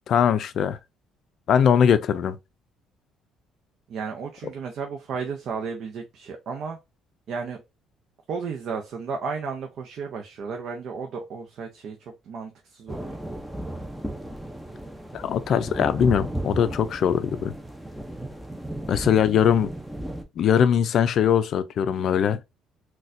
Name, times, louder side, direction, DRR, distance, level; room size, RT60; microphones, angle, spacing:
voice 1, 0.1-0.8 1.5-2.4 15.1-17.5 18.9-19.7 20.4-22.4, left 8 dB, 55° left, 0.4 m, -21 dB
voice 2, 3.9-6.8 7.3-7.6 8.3-13.2, right 5 dB, 60° right, 0.6 m, -33 dB
sound 1, 12.9-20.2, right 1 dB, 5° right, 0.5 m, -35 dB
4.0 x 2.3 x 2.5 m
cardioid pair, 110°, 0 cm